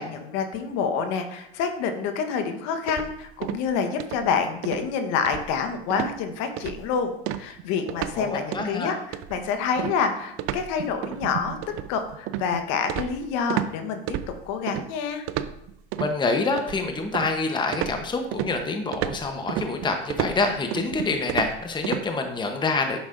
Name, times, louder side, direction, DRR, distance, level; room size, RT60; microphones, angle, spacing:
voice 1, 0.0-15.2, left 6 dB, 55° left, 6 dB, 1.2 m, -28 dB
sound 1, 2.9-3.7 4.0-4.3 4.6-4.9 5.3-5.7 5.9-6.2 6.6-6.9 7.3-8.2 8.5-8.7 9.1-13.7 14.1-14.9 15.3-16.1 16.6-17.4 17.7-22.0, right 11 dB, 45° right, 0.6 m, -31 dB
voice 2, 7.9-9.0 16.0-23.0, left 3 dB, 15° left, 5 dB, 0.9 m, -27 dB
9.4 x 6.1 x 2.6 m, 0.77 s
hypercardioid pair, 90°, 31 cm